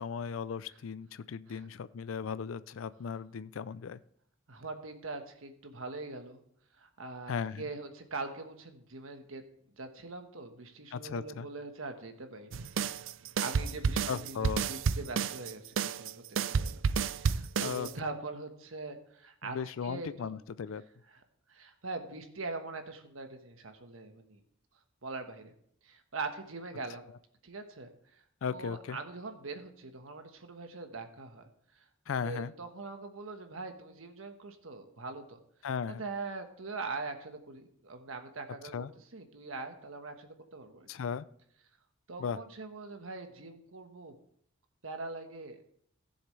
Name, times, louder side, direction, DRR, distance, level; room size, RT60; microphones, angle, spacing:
voice 1, 0.0-4.0 7.3-7.7 10.9-11.5 14.1-14.7 17.6-17.9 19.4-20.8 28.4-29.0 32.1-32.5 35.6-36.0 38.7-38.9 40.9-41.2 42.2-42.4, left 6 dB, 80° left, 16 dB, 0.4 m, -36 dB
voice 2, 4.5-6.4 6.7-9.4 9.7-13.1 13.4-16.8 17.1-19.6 19.8-20.3 21.1-21.2 21.5-24.4 25.0-25.5 25.8-27.0 27.4-27.9 28.5-31.4 31.7-31.8 32.2-35.4 35.9-38.9 39.1-40.9 42.1-44.1 44.8-45.6, right 3 dB, 90° right, 6 dB, 1.3 m, -42 dB
sound 1, 12.5-17.9, right 6 dB, 70° right, 0.4 m, -31 dB
16.0 x 7.1 x 3.2 m, 0.68 s
head